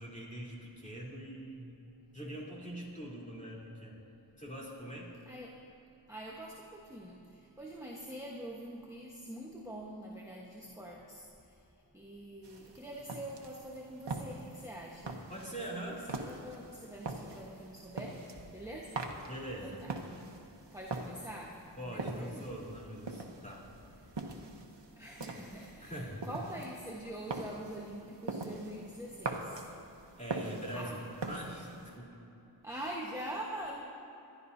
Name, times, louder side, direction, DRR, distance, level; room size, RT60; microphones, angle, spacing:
voice 1, 0.0-1.8 2.1-4.0 4.4-5.1 15.3-16.0 19.3-19.8 21.8-23.6 25.8-26.3 30.2-31.0 31.3-32.2, right 1 dB, 15° left, -5 dB, 3.5 m, -43 dB
voice 2, 5.3-5.6 6.1-11.7 11.9-19.3 19.6-19.9 20.7-22.5 24.3-24.4 25.0-29.6 30.7-31.0 32.6-33.8, right 1 dB, 5° right, -3 dB, 1.2 m, -45 dB
sound 1, 12.4-32.0, right 3 dB, 85° right, 1.1 m, -43 dB
25.5 x 11.0 x 2.7 m, 2.9 s
wide cardioid pair, 45°, 42 cm